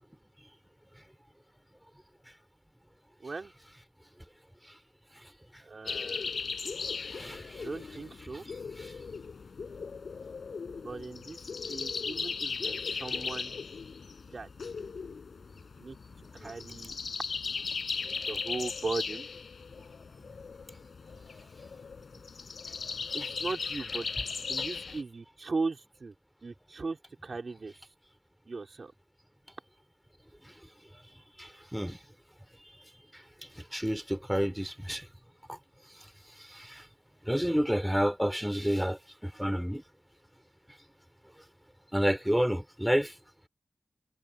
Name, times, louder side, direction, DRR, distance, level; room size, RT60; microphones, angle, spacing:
voice 1, 3.2-3.5 5.6-6.3 7.6-8.5 10.8-13.5 14.3-14.7 15.8-16.0 16.3-17.0 18.3-19.3 23.1-24.1 24.5-26.1 26.4-27.9 28.5-28.9, right 3 dB, 55° right, 3.9 m, -38 dB
sound 1, 5.9-25.0, left 5 dB, 80° left, 5.6 m, -38 dB
voice 2, 7.1-7.4 16.4-16.5 31.4-32.0 33.7-35.0 36.6-36.8 37.3-39.8 41.9-43.1, equal, 5° right, 2.9 m, -29 dB
wide cardioid pair, 70°, 0 cm